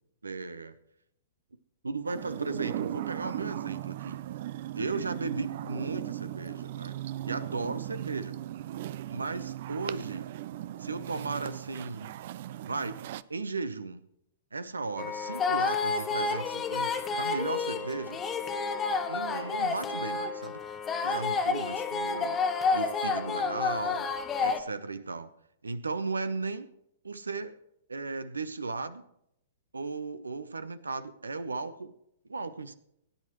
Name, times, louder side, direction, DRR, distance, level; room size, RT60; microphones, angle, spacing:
voice 1, 0.2-0.7 1.8-4.2 4.7-6.9 7.2-8.4 9.1-10.3 10.8-12.1 12.6-13.0 13.3-14.0 14.5-18.2 19.1-20.6 21.0-24.1 24.4-25.3 25.6-26.7 27.0-27.5 27.9-29.0 29.7-31.9 32.3-32.7, right 3 dB, 80° right, 14 dB, 0.8 m, -36 dB
sound 1, 2.0-13.2, right 13 dB, 50° right, 0.4 m, -37 dB
sound 2, 15.0-24.6, left 4 dB, 20° left, 1.1 m, -30 dB
17.5 x 10.0 x 3.1 m, 0.77 s
figure-of-eight pair, 110°, 0 cm